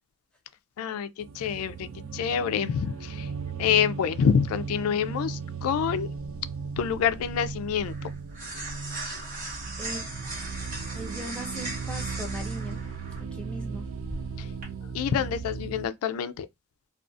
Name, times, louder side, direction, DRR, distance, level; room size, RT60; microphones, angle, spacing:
voice 1, 0.8-3.3 3.6-6.2 6.8-8.1 14.4-14.5 14.8-16.5, left 7 dB, 90° left, 0.3 m, -27 dB
sound 1, 1.2-15.9, right 5 dB, 70° right, 0.3 m, -37 dB
sound 2, 6.2-14.6, right 2 dB, 40° right, 1.1 m, -39 dB
voice 2, 10.9-12.8 13.2-13.9, right 1 dB, 5° left, 0.5 m, -38 dB
2.5 x 2.3 x 2.4 m
head